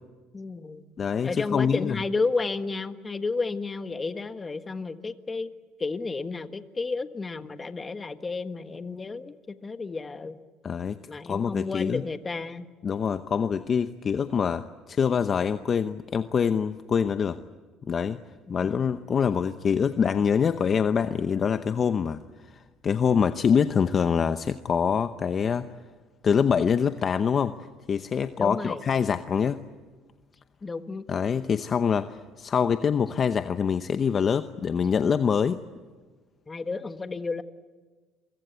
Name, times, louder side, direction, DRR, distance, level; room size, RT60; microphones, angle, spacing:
voice 1, 0.3-0.9 1.2-5.5 5.8-10.4 11.0-12.6 18.5-18.7 28.4-28.8 30.6-31.0 36.5-37.4, left 4 dB, 20° left, 9 dB, 1.4 m, -32 dB
voice 2, 1.0-2.0 10.6-11.0 11.2-12.0 12.8-17.4 17.9-18.2 18.5-22.2 22.5-25.7 26.2-27.5 27.9-29.6 31.1-35.6, left 7 dB, 40° left, 10 dB, 0.8 m, -25 dB
29.5 x 23.5 x 8.1 m, 1.4 s
cardioid pair, 110°, 0 cm